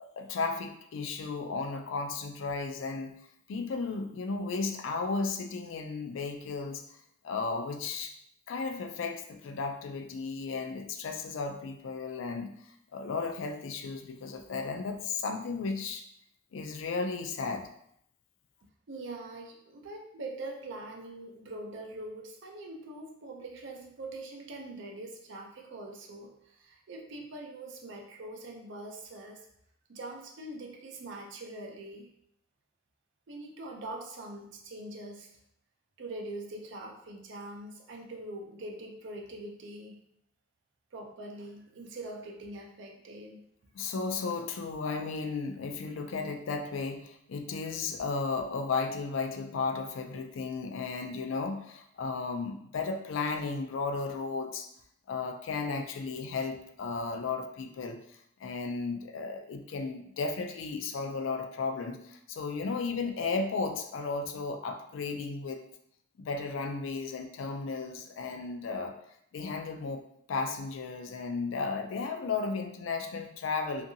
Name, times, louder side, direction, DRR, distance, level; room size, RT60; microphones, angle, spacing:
voice 1, 0.0-3.2 3.5-6.9 7.2-8.1 8.5-12.5 12.9-16.0 16.5-17.7 43.7-54.7 55.1-58.0 58.4-65.6 66.2-69.0 69.3-73.9, left 4 dB, 65° left, 5 dB, 0.3 m, -34 dB
voice 2, 18.9-29.5 29.9-32.1 33.3-35.3 36.0-40.0 40.9-43.4, right 2 dB, 60° right, 1 dB, 0.5 m, -43 dB
2.6 x 2.5 x 2.6 m, 0.71 s
head